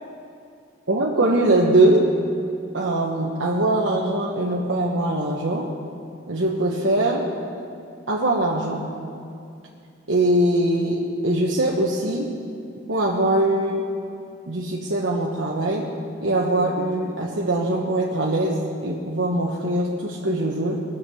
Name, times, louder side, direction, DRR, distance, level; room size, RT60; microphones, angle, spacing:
voice 1, 0.9-2.1 2.7-5.7 6.3-7.3 8.1-8.9 10.1-12.4 12.9-13.8 14.5-15.9 16.2-20.8, right 1 dB, 85° right, -3 dB, 1.2 m, -22 dB
21.0 x 7.5 x 6.3 m, 2.5 s
head